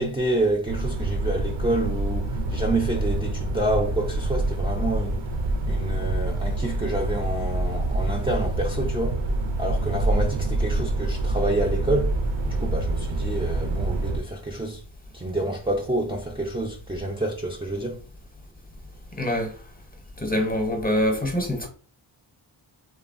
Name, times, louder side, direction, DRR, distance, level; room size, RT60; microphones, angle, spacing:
voice 1, 0.0-5.3 5.7-9.2 9.6-12.1 12.5-14.8 15.1-18.0, right 1 dB, 15° right, 0.3 m, -28 dB
sound 1, 0.7-14.2, right 2 dB, 70° right, 0.5 m, -26 dB
voice 2, 19.2-19.5 20.2-21.7, left 1 dB, 20° left, 0.6 m, -24 dB
3.1 x 2.0 x 2.4 m
wide cardioid pair, 95°, 47 cm